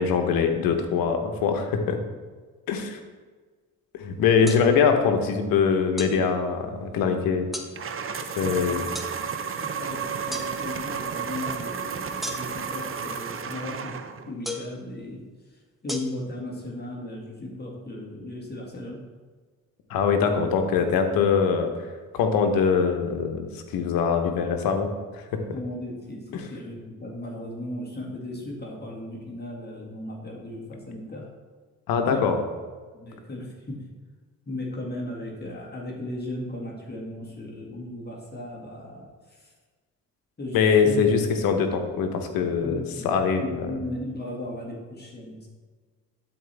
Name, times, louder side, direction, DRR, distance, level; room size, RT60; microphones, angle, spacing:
voice 1, 0.0-2.0 2.7-3.0 3.9-7.5 8.4-8.9 19.9-21.7 22.1-25.4 26.3-26.5 31.9-32.4 40.5-43.7, left 6 dB, 85° left, 6 dB, 1.0 m, -23 dB
sound 1, 4.5-4.6 6.0-6.2 7.5-7.7 8.9-9.1 10.3-10.5 12.2-12.7 14.4-14.8 15.9-16.0, left 1 dB, ahead, 0.9 m, -34 dB
sound 2, 7.8-14.3, right 6 dB, 40° right, 0.7 m, -32 dB
voice 2, 8.4-8.9 9.3-15.2 15.8-19.0 25.5-31.3 32.1-32.2 32.9-33.8 34.5-39.5 40.4-41.0 42.6-45.5, left 1 dB, 30° left, -2 dB, 2.0 m, -36 dB
12.0 x 4.4 x 3.4 m, 1.4 s
cardioid pair, 70°, 34 cm